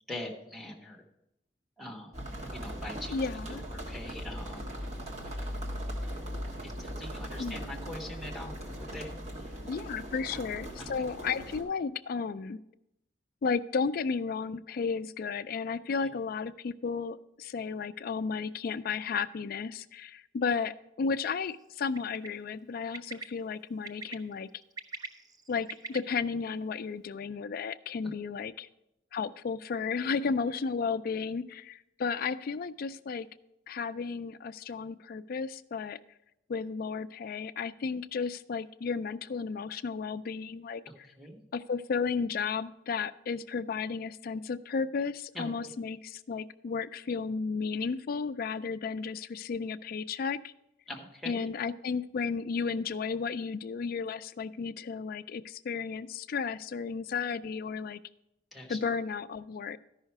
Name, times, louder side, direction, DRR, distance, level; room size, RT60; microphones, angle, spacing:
voice 1, 0.1-1.0 1.8-2.1 2.5-4.7 6.6-9.6 10.3-10.4 10.8-10.9 16.0-16.1 40.9-41.4 45.3-45.5 50.9-51.5 58.5-58.8, left 1 dB, ahead, 0 dB, 1.3 m, -43 dB
sound 1, 2.1-11.6, equal, 35° right, 1.4 m, -39 dB
voice 2, 3.1-3.6 7.4-7.7 9.6-12.6 13.4-24.5 25.5-28.7 29.1-33.3 33.7-36.0 36.5-40.8 41.5-50.5 51.2-58.0 58.7-59.8, left 5 dB, 50° left, 13 dB, 0.3 m, -33 dB
Bird, 21.9-22.3 22.9-23.2 23.8-24.1 24.6-26.0, right 3 dB, 20° right, 0.5 m, -40 dB
13.0 x 5.6 x 4.6 m, 0.85 s
head